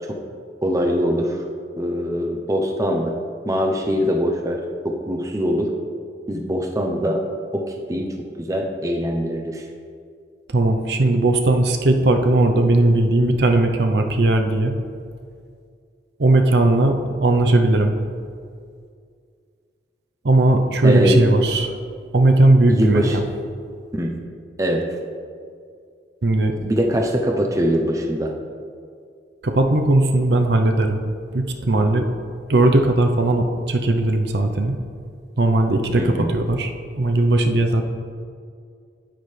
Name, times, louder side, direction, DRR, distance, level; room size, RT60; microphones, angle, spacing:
voice 1, 0.6-1.4 1.8-3.2 3.4-5.7 6.3-7.2 7.5-9.6 20.8-21.3 22.7-23.2 23.9-24.2 24.6-24.9 26.6-28.3 36.0-36.3, equal, 15° right, 1 dB, 0.7 m, -22 dB
voice 2, 10.5-14.8 16.2-18.0 20.2-21.7 22.1-23.2 26.2-26.6 29.4-31.0 31.3-32.1 32.5-34.8 35.4-37.8, right 2 dB, 65° right, 5 dB, 0.7 m, -18 dB
9.8 x 8.9 x 3.3 m, 2.2 s
head